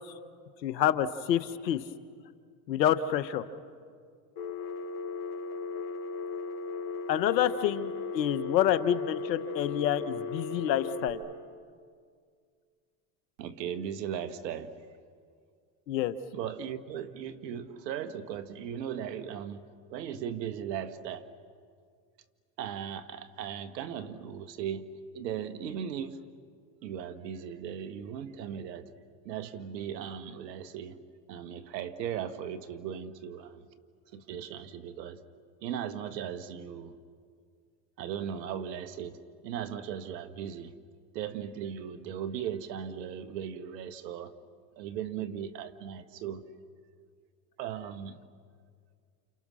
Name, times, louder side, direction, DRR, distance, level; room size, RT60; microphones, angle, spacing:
voice 1, 0.6-1.8 2.7-3.4 7.1-11.2 15.9-16.1, left 11 dB, 90° left, 1.3 m, -28 dB
Telephone, 4.4-11.1, left 4 dB, 50° left, 4.3 m, -36 dB
voice 2, 13.4-14.8 16.3-19.6 19.9-21.3 22.6-26.2 26.8-28.9 29.2-31.0 31.3-33.7 34.1-35.2 35.6-36.9 38.0-40.7 41.1-44.3 44.8-46.4 47.6-48.2, right 8 dB, 85° right, 1.6 m, -37 dB
30.0 x 29.0 x 6.3 m
hypercardioid pair, 90°, 49 cm